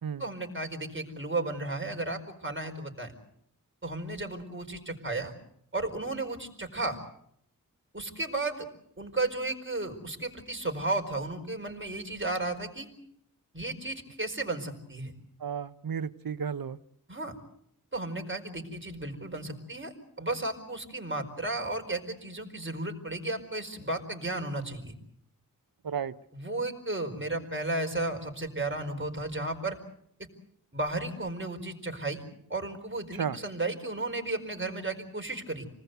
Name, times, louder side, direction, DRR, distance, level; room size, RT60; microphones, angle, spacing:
voice 1, 0.2-3.1 3.8-5.3 5.7-7.0 7.9-8.6 9.0-12.9 13.5-15.1 17.1-17.3 17.9-24.9 26.3-29.8 30.7-32.2 32.5-35.7, right 2 dB, 35° right, 3 dB, 4.7 m, -34 dB
voice 2, 15.4-16.8 25.8-26.1 33.1-33.4, right 7 dB, 85° right, 14 dB, 0.9 m, -33 dB
28.5 x 19.5 x 8.1 m, 0.70 s
wide cardioid pair, 75°, 34 cm